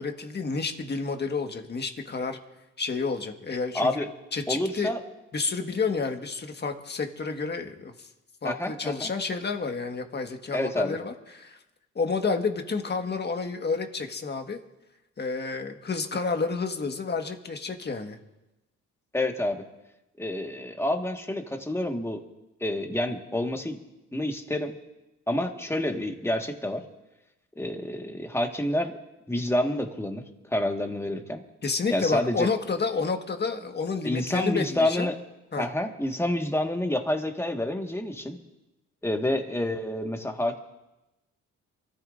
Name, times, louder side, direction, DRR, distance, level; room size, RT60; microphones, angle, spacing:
voice 1, 0.0-2.4 2.8-4.9 5.3-8.1 8.4-11.6 11.9-14.6 15.2-18.2 31.6-35.1 35.5-35.7, left 4 dB, 35° left, 5 dB, 1.6 m, -30 dB
voice 2, 3.7-4.1 4.5-5.0 8.4-9.1 10.5-11.0 19.1-19.6 20.2-22.2 22.6-23.8 24.1-24.7 25.3-26.8 27.6-28.9 29.3-30.2 30.5-31.4 31.9-32.5 34.0-35.2 35.6-38.4 39.0-40.6, left 1 dB, 10° left, 3 dB, 1.6 m, -28 dB
28.0 x 13.5 x 2.6 m, 0.98 s
cardioid pair, 90°, 30 cm